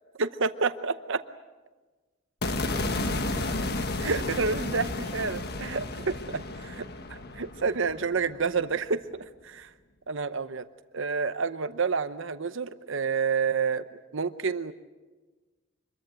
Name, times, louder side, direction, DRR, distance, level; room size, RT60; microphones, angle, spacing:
voice 1, 0.2-1.2 4.0-6.8 7.1-9.7 10.1-10.7 10.9-13.8 14.1-14.7, right 5 dB, 60° right, 11 dB, 0.8 m, -29 dB
sound 1, 2.4-8.6, left 2 dB, 50° left, 1.5 m, -32 dB
25.5 x 22.5 x 7.7 m, 1.3 s
head